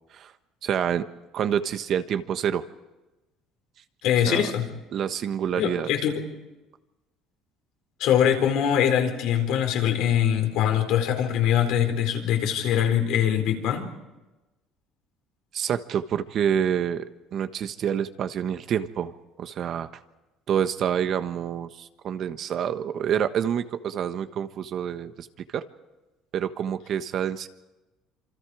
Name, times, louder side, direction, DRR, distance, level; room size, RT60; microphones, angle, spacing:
voice 1, 0.6-1.0 1.3-2.6 4.3-4.5 4.9-5.9 15.5-17.1 17.3-19.1 19.4-19.9 20.5-25.3 25.5-25.6 26.3-27.5, right 9 dB, 50° right, 10 dB, 1.2 m, -27 dB
voice 2, 4.0-4.7 5.5-6.3 8.0-13.9, left 9 dB, 70° left, 4 dB, 4.2 m, -23 dB
27.0 x 25.5 x 5.0 m, 1.1 s
cardioid pair, 115°, 0 cm